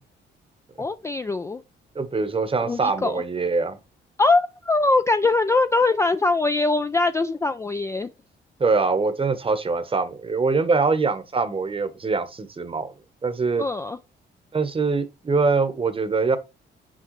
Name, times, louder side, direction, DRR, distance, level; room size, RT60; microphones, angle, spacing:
voice 1, 0.8-1.6 2.6-3.2 4.2-8.1 13.6-14.0, left 3 dB, 15° left, 0.3 m, -22 dB
voice 2, 1.9-3.8 8.6-12.9 13.2-13.6 14.5-16.4, right 4 dB, 25° right, 0.9 m, -23 dB
6.4 x 4.8 x 3.1 m
cardioid pair, 90°, 20 cm